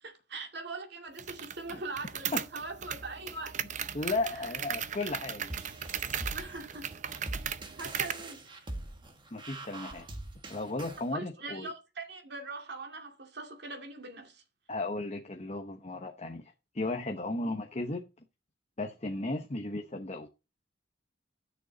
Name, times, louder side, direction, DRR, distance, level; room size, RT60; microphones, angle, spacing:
voice 1, 0.0-3.6 4.3-4.5 6.3-6.9 7.8-8.6 11.1-14.4 17.4-17.5, right 3 dB, 60° right, 2.3 m, -42 dB
sound 1, 1.2-8.3, right 8 dB, 40° right, 0.6 m, -37 dB
voice 2, 3.9-5.5 9.3-10.1 10.5-11.7 14.7-18.0 18.8-20.3, left 2 dB, 35° left, 1.0 m, -35 dB
sound 2, 5.5-11.1, right 1 dB, 25° right, 1.7 m, -43 dB
11.5 x 6.6 x 4.0 m
head